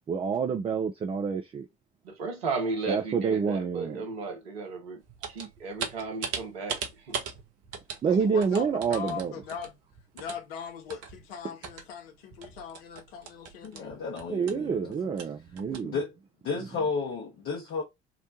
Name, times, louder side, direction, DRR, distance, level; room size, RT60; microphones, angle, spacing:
voice 1, 0.1-1.7 2.9-4.0 8.0-9.3 14.3-16.0, right 6 dB, 20° right, 0.3 m, -28 dB
voice 2, 2.0-6.8 7.1-7.2, right 4 dB, 75° right, 0.9 m, -34 dB
sound 1, 5.0-11.9 12.3-15.8, right 6 dB, 50° right, 0.7 m, -40 dB
voice 3, 8.1-9.8 10.1-14.0, left 7 dB, 70° left, 0.7 m, -40 dB
voice 4, 13.6-14.9 15.7-16.1 16.4-17.8, left 4 dB, 45° left, 0.9 m, -33 dB
2.9 x 2.1 x 2.6 m
figure-of-eight pair, 50°, 31 cm